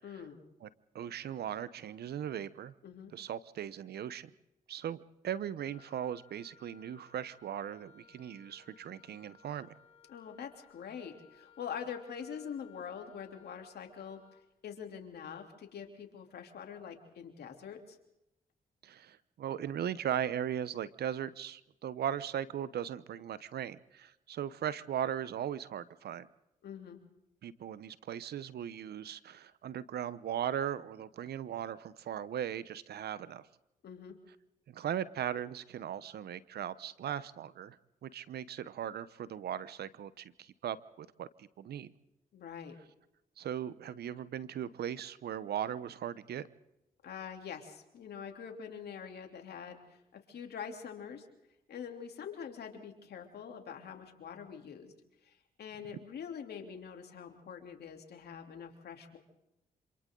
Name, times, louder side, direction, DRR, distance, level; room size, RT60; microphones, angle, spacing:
voice 1, 0.0-0.4 2.8-3.1 10.1-14.2 14.6-18.0 26.6-27.0 33.8-34.2 42.3-42.8 47.0-51.3 51.7-54.9 55.2-59.2, left 7 dB, 75° left, 4 dB, 3.2 m, -45 dB
voice 2, 0.9-2.7 3.1-4.3 4.7-5.0 5.2-9.7 18.8-26.3 27.4-33.5 34.7-37.8 38.0-41.9 43.4-46.5, right 9 dB, 75° right, 17 dB, 0.9 m, -38 dB
Wind instrument woodwind instrument, 5.6-14.5, left 6 dB, 35° left, 2.7 m, -62 dB
27.0 x 26.5 x 3.9 m, 0.86 s
supercardioid pair, 55°, 17 cm